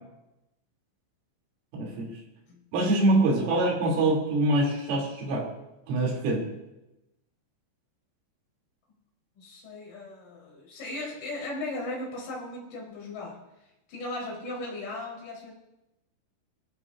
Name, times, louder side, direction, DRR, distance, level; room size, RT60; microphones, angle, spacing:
voice 1, 1.7-2.1 2.7-5.5 5.9-6.4, right 2 dB, 85° right, -2 dB, 6.0 m, -24 dB
voice 2, 9.4-13.4 13.9-15.5, left 2 dB, 60° left, -4 dB, 6.5 m, -37 dB
22.5 x 15.5 x 2.7 m, 0.93 s
omnidirectional pair, 5.6 m